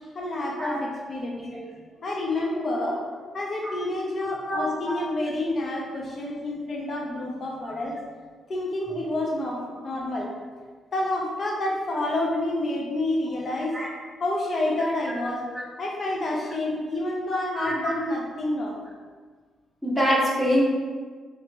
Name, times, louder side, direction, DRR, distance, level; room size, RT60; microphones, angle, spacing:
voice 1, 0.1-1.4 2.0-3.0 3.3-8.0 8.5-10.3 10.9-13.8 14.2-15.4 15.8-18.8, left 1 dB, 40° left, -2 dB, 0.6 m, -28 dB
voice 2, 17.3-17.8 19.8-20.6, equal, 5° left, -6 dB, 0.7 m, -25 dB
3.2 x 2.9 x 3.2 m, 1.5 s
cardioid pair, 125°, 0 cm